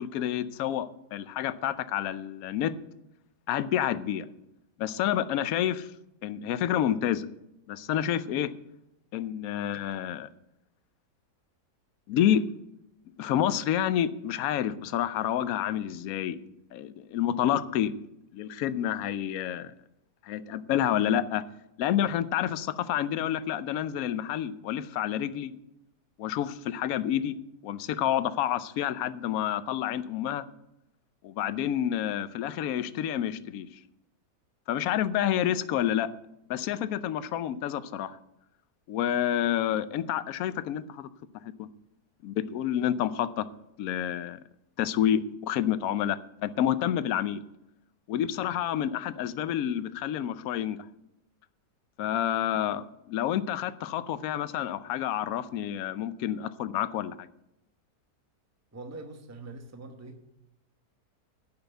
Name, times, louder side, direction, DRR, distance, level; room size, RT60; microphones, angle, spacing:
voice 1, 0.0-2.8 3.5-4.3 4.8-5.9 6.2-7.3 7.7-8.5 9.1-10.3 12.1-12.4 13.2-16.4 16.7-17.9 18.3-19.7 20.2-21.4 21.8-25.5 26.2-27.4 27.6-30.4 31.2-33.7 34.7-36.1 36.5-38.2 38.9-41.1 41.6-41.7 42.2-43.5 43.8-44.4 44.8-47.4 48.1-50.8 52.0-57.3, left 10 dB, 70° left, 15 dB, 1.0 m, -29 dB
voice 2, 58.7-60.2, right 2 dB, 15° right, 6 dB, 0.8 m, -43 dB
10.5 x 5.8 x 8.0 m, 0.86 s
omnidirectional pair, 1.7 m